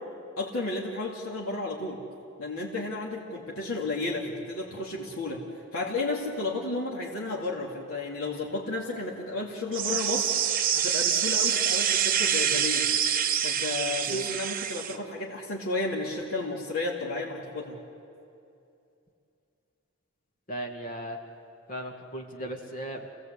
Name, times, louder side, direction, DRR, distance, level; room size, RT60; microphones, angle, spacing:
voice 1, 0.4-2.0 2.4-5.4 5.7-10.3 10.7-12.8 13.4-17.8, left 2 dB, 75° left, -3 dB, 2.7 m, -32 dB
sound 1, 9.7-15.0, right 8 dB, 40° right, 1.0 m, -26 dB
voice 2, 20.5-21.2 21.7-23.1, right 1 dB, 40° left, 2 dB, 2.2 m, -36 dB
29.5 x 18.0 x 8.3 m, 2.6 s
head